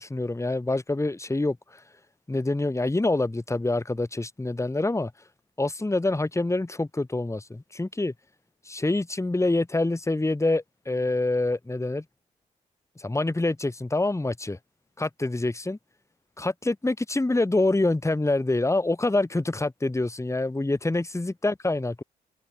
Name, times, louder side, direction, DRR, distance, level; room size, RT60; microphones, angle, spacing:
voice 1, 0.0-1.8 2.3-5.1 5.6-8.1 8.7-12.0 13.0-14.6 15.0-15.8 16.4-22.0, left 2 dB, 15° left, 1.6 m, -26 dB
open air
hypercardioid pair, 40°, 19 cm